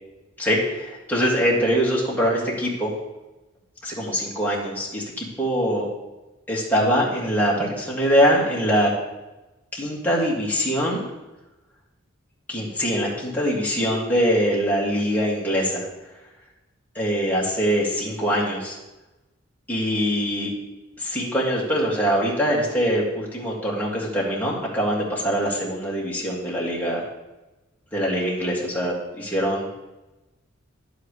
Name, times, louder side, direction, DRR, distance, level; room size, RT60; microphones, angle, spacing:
voice 1, 0.4-2.9 3.8-5.9 6.5-8.9 9.7-11.0 12.5-15.9 17.0-18.8 19.7-20.5 21.0-27.0 27.9-29.7, equal, 10° left, -5 dB, 2.2 m, -23 dB
10.5 x 7.8 x 3.3 m, 1.0 s
head